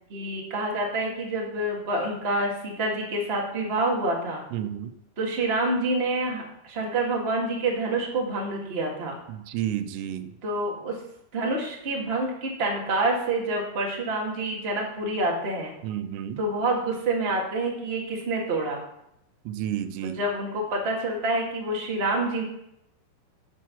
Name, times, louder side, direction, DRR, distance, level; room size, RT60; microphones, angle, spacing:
voice 1, 0.1-4.4 5.2-9.2 10.4-11.0 11.3-15.7 16.4-18.8 20.0-22.4, right 2 dB, 30° right, -1 dB, 1.0 m, -27 dB
voice 2, 4.5-4.9 9.3-10.3 15.8-16.4 19.5-20.2, right 11 dB, 85° right, 10 dB, 2.9 m, -31 dB
9.3 x 8.1 x 5.9 m, 0.80 s
omnidirectional pair, 4.8 m